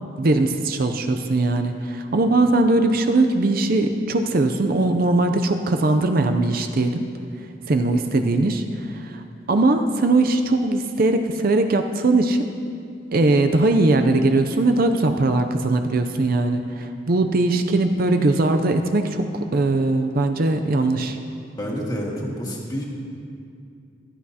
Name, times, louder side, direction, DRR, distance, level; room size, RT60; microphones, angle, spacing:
voice 1, 0.2-7.1 7.7-12.4 13.1-21.2, right 2 dB, 50° right, 7 dB, 0.5 m, -20 dB
voice 2, 21.6-22.8, equal, 20° left, -3 dB, 1.8 m, -28 dB
15.5 x 12.5 x 2.8 m, 2.4 s
head